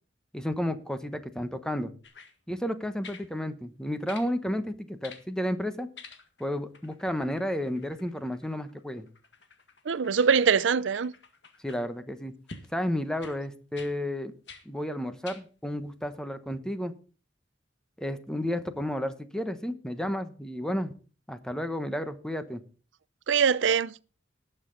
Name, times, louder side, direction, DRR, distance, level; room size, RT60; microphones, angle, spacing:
voice 1, 0.3-1.9 2.5-5.9 6.4-9.1 11.6-12.3 12.7-14.3 14.6-16.9 18.0-20.9 21.3-22.6, equal, 5° left, 1.0 m, -32 dB
sound 1, 2.0-2.3 3.0-3.3 4.1-4.3 5.0-5.3 5.9-6.5 6.7-11.8 12.5-12.7 13.2-13.4 13.7-13.9 14.5-14.6 15.2-15.4 16.1-16.2, left 4 dB, 65° left, 1.8 m, -49 dB
voice 2, 9.9-11.1 23.3-24.0, right 6 dB, 85° right, 0.5 m, -23 dB
19.0 x 6.7 x 3.9 m
head